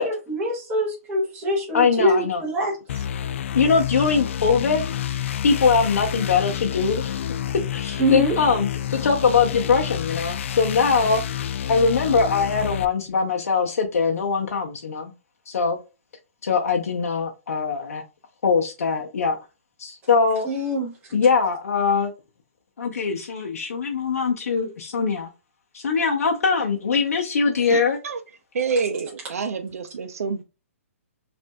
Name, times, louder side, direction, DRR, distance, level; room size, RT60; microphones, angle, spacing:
voice 1, 0.0-3.0 8.0-8.3 20.4-20.9, equal, 20° right, 1.1 m, -24 dB
voice 2, 1.7-2.4 3.5-4.8 5.4-7.2 7.7-11.2 11.7-15.1 15.5-15.8 16.4-18.0 18.4-19.4 19.8-20.5 21.1-22.1 22.8-25.3 25.7-28.0, left 5 dB, 85° left, 0.7 m, -22 dB
sound 1, 2.9-12.8, left 10 dB, 60° left, 0.3 m, -29 dB
voice 3, 27.7-28.2 28.5-30.4, right 5 dB, 80° right, 0.6 m, -27 dB
5.4 x 2.6 x 2.2 m
hypercardioid pair, 155°, 8 cm